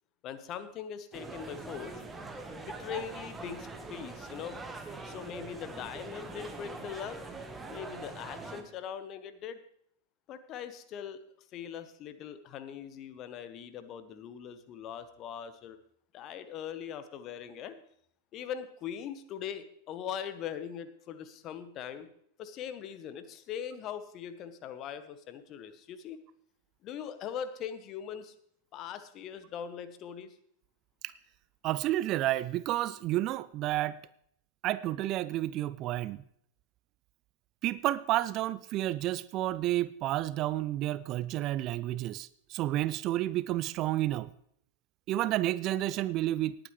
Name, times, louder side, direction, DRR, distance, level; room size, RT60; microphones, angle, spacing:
voice 1, 0.2-2.0 2.7-4.6 5.0-7.2 7.7-9.6 10.3-15.8 16.1-17.8 18.3-22.1 22.4-26.2 26.8-28.3 28.7-30.3, left 8 dB, 35° left, 12 dB, 0.9 m, -41 dB
sound 1, 1.1-8.6, right 3 dB, 10° right, 1.2 m, -43 dB
voice 2, 31.6-34.0 34.6-36.2 37.6-44.3 45.1-46.6, right 15 dB, 35° right, 17 dB, 0.3 m, -30 dB
18.5 x 8.9 x 3.2 m, 0.69 s
figure-of-eight pair, 90°, 0 cm